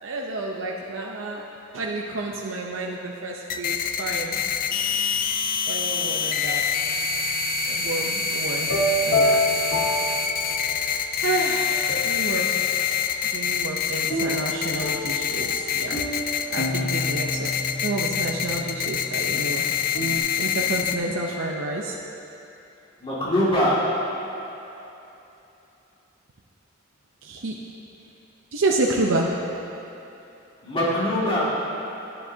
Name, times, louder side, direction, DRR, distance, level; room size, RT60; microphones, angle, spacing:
voice 1, 0.0-1.4 1.7-4.4 5.7-6.6 7.6-8.7 9.0-9.6 10.6-16.1 16.5-19.7 20.4-22.0 27.2-27.6 28.5-29.3, right 2 dB, 85° right, -1 dB, 0.6 m, -29 dB
sound 1, 3.5-21.0, left 7 dB, 45° left, 0.3 m, -26 dB
sound 2, 8.6-11.0 11.6-12.5 14.1-20.2, left 1 dB, 70° left, 0.9 m, -28 dB
voice 2, 23.0-23.8 30.6-31.4, left 1 dB, 30° left, -9 dB, 2.0 m, -22 dB
10.5 x 10.5 x 2.7 m, 3.0 s
head